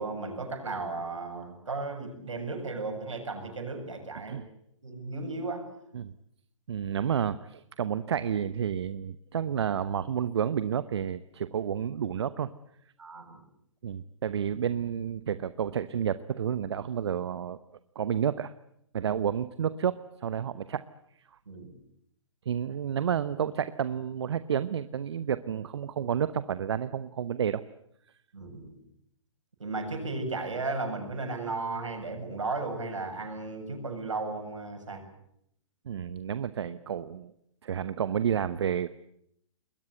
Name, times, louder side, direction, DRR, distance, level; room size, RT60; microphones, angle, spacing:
voice 1, 0.0-4.4 4.8-5.7 13.0-13.4 21.5-21.7 28.3-28.8 29.6-35.0, right 3 dB, 75° right, 5 dB, 7.4 m, -35 dB
voice 2, 6.7-12.5 13.8-17.6 17.9-18.5 18.9-20.8 22.5-27.6 35.9-37.3 37.6-38.9, right 8 dB, 60° right, 14 dB, 0.9 m, -30 dB
26.5 x 21.5 x 7.9 m, 0.74 s
figure-of-eight pair, 125°, 16 cm